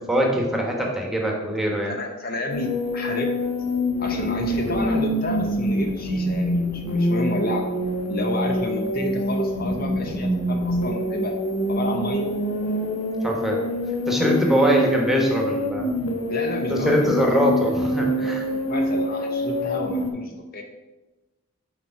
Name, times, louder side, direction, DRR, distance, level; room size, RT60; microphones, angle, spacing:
voice 1, 0.1-1.9 13.2-13.6 14.1-16.0 16.7-18.5, equal, ahead, -1 dB, 1.1 m, -22 dB
voice 2, 1.9-3.3 4.0-7.6 8.1-11.3 11.7-12.3 14.2-14.6 16.3-17.2 18.2-20.6, left 1 dB, 45° left, 3 dB, 0.7 m, -30 dB
sound 1, 2.5-20.1, equal, 85° left, 1.1 m, -25 dB
6.8 x 4.3 x 5.7 m, 1.1 s
head